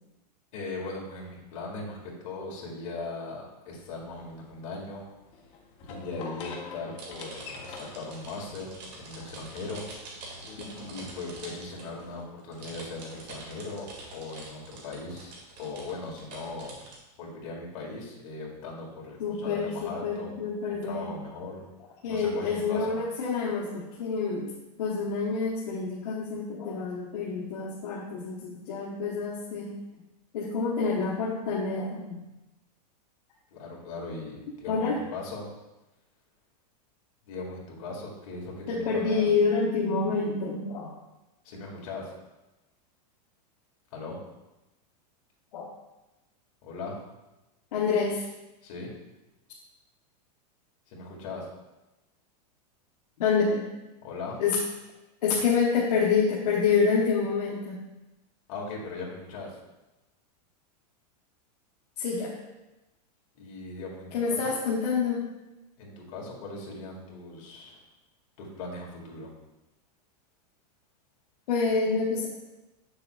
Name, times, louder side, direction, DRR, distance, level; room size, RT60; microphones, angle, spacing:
voice 1, 0.5-5.1 5.8-9.9 10.8-16.7 17.2-20.4 20.7-21.7 22.1-23.0 33.5-34.3 34.6-35.5 37.3-39.3 41.4-42.1 43.9-44.2 46.6-47.0 48.6-48.9 50.9-51.5 54.0-54.4 58.5-59.6 63.3-64.5 65.8-67.8 68.4-69.3, left 3 dB, 50° left, -3 dB, 2.0 m, -39 dB
sound 1, 3.7-12.2, left 4 dB, 30° left, 0.7 m, -47 dB
sound 2, 6.9-17.0, right 2 dB, 75° right, 2.2 m, -45 dB
voice 2, 19.2-21.1 22.0-24.5 24.8-29.7 30.3-32.2 34.7-35.0 38.7-41.0 45.5-45.7 47.7-48.3 53.2-53.6 54.4-54.6 55.2-57.8 62.0-62.3 64.1-65.2 71.5-72.3, left 5 dB, 75° left, -4 dB, 1.1 m, -27 dB
7.6 x 6.8 x 2.3 m, 1.0 s
supercardioid pair, 165°, 21 cm